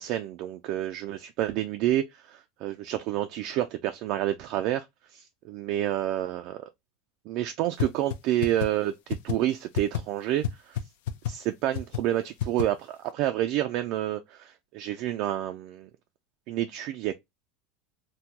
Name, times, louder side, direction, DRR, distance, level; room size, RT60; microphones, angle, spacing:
voice 1, 0.0-4.9 5.1-6.6 7.3-10.8 11.3-15.9 16.5-17.2, right 13 dB, 50° right, 0.3 m, -29 dB
sound 1, 7.8-8.2 8.4-8.7 9.1-9.3 9.7-10.0 10.4-10.5 10.8-10.9 11.1-11.3 11.7-12.0 12.4-12.6, left 10 dB, 75° left, 0.5 m, -27 dB
3.6 x 2.1 x 2.8 m
supercardioid pair, 155°, 0 cm